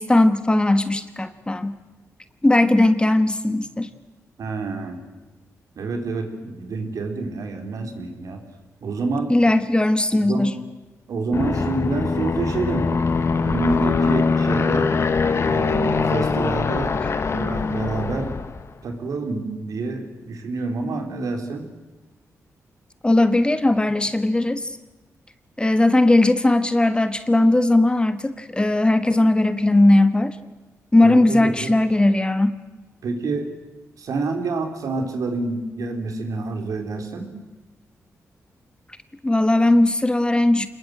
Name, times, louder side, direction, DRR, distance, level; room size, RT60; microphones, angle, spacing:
voice 1, 0.0-1.8 2.4-3.9 9.3-10.6 23.0-24.8 25.6-30.4 30.9-32.6 39.2-40.7, left 2 dB, 15° left, 11 dB, 1.4 m, -18 dB
voice 2, 4.4-5.0 5.8-8.4 8.8-9.3 10.3-10.5 11.1-12.9 13.4-15.0 15.4-17.0 17.3-18.3 18.8-21.6 31.0-31.7 33.0-33.5 34.0-37.3, right 3 dB, 75° right, 5 dB, 4.0 m, -27 dB
Aircraft, 11.3-18.7, left 4 dB, 50° left, 1.8 m, -22 dB
26.0 x 21.0 x 7.9 m, 1.1 s
cardioid pair, 85°, 6 cm